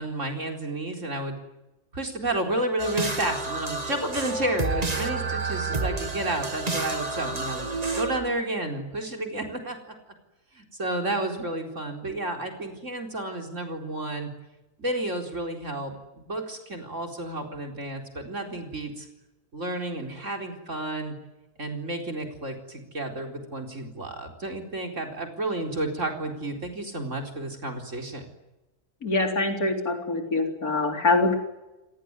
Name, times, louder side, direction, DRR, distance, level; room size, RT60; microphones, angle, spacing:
voice 1, 0.0-1.4 1.9-10.0 10.5-14.3 14.8-19.1 19.5-21.1 21.6-28.3, right 1 dB, 55° right, 3 dB, 4.6 m, -31 dB
sound 1, 2.8-8.2, right 3 dB, 25° right, 1.9 m, -30 dB
voice 2, 29.0-31.4, left 3 dB, 75° left, 3 dB, 4.4 m, -24 dB
29.0 x 18.5 x 9.8 m, 1.0 s
omnidirectional pair, 1.6 m